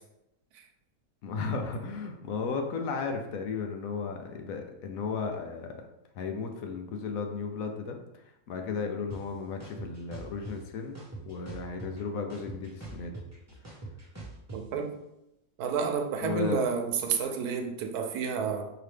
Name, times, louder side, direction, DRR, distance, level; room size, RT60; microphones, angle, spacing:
voice 1, 1.2-5.8 6.1-11.0 11.2-13.1 16.2-16.6, left 5 dB, 70° left, 4 dB, 1.0 m, -35 dB
sound 1, 9.1-9.2 9.6-10.5 10.9-12.0 12.3-14.6, right 2 dB, 15° right, 0.8 m, -42 dB
voice 2, 14.5-14.9 15.6-18.7, right 5 dB, 85° right, 4 dB, 1.2 m, -30 dB
4.8 x 2.9 x 3.3 m, 0.86 s
omnidirectional pair, 1.6 m